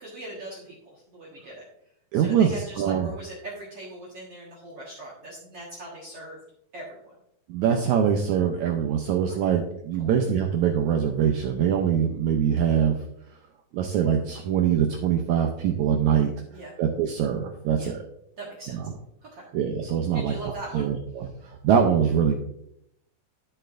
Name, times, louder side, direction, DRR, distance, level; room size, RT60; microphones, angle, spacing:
voice 1, 0.0-1.6 2.1-6.4 6.7-7.2 9.3-9.5 10.0-10.1 16.5-16.8 17.7-17.9 18.4-18.8 19.3-19.5 20.1-20.9, right 2 dB, 50° right, -5 dB, 2.0 m, -40 dB
voice 2, 2.1-3.1 7.5-13.0 13.7-16.3 16.8-18.0 18.7-18.9 19.5-22.4, right 8 dB, 85° right, 3 dB, 1.6 m, -23 dB
11.5 x 6.6 x 2.5 m, 0.76 s
omnidirectional pair, 4.2 m